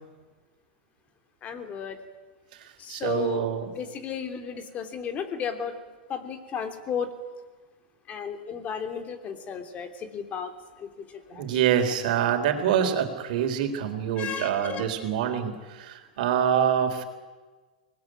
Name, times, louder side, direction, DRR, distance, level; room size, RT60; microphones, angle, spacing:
voice 1, 1.4-2.0 2.8-3.5 3.8-5.7 6.1-7.1 8.1-10.5 10.8-11.5 14.2-14.9, left 7 dB, 30° left, 7 dB, 3.3 m, -34 dB
voice 2, 2.9-3.7 11.3-17.0, right 9 dB, 60° right, 6 dB, 4.0 m, -26 dB
24.5 x 19.5 x 9.3 m, 1.3 s
hypercardioid pair, 120°, 5 cm